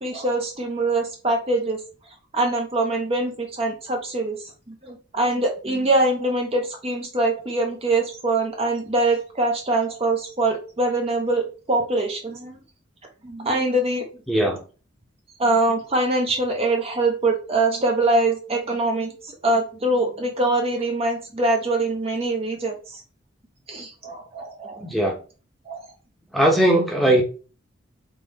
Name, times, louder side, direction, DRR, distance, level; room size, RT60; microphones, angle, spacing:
voice 1, 0.0-1.8 2.3-12.5 13.2-14.0 15.4-23.0 23.7-24.9 25.7-25.9, right 2 dB, 30° right, 2 dB, 0.7 m, -23 dB
voice 2, 14.3-14.6 24.8-25.2 26.3-27.2, right 1 dB, ahead, 0 dB, 0.9 m, -19 dB
3.8 x 2.9 x 4.0 m, 0.36 s
head